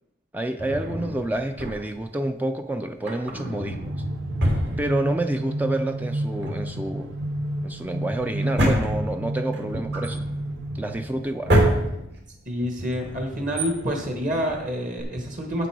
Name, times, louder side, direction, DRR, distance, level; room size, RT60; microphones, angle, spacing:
voice 1, 0.3-4.0 4.8-7.1 7.6-10.2 10.7-11.5, right 1 dB, 10° right, 6 dB, 0.3 m, -28 dB
Drawer open or close, 0.6-2.1 2.9-5.4 5.7-5.8 6.3-15.0, equal, 60° right, 2.2 m, -28 dB
sound 1, 3.6-11.5, right 1 dB, 90° right, 0.8 m, -31 dB
voice 2, 12.5-15.7, equal, 40° right, 2 dB, 1.4 m, -28 dB
8.4 x 7.8 x 4.7 m, 0.83 s
head